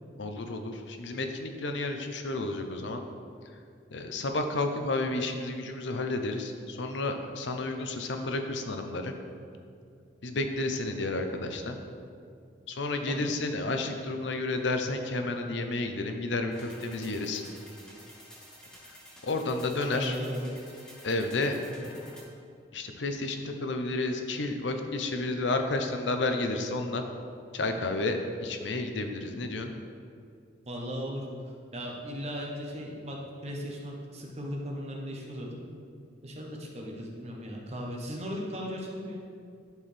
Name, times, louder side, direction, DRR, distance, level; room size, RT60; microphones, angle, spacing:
voice 1, 0.2-3.0 3.9-9.1 10.2-11.8 12.7-17.4 19.2-20.2 21.0-21.5 22.7-27.0 27.5-29.7, left 2 dB, 70° left, 5 dB, 0.7 m, -31 dB
sound 1, 16.5-22.2, equal, 5° left, 1.0 m, -51 dB
voice 2, 19.9-20.5 21.7-21.9 30.7-31.2 31.7-33.2 33.4-35.6 36.2-39.2, equal, 35° right, -1 dB, 1.0 m, -37 dB
10.5 x 4.6 x 3.4 m, 2.3 s
head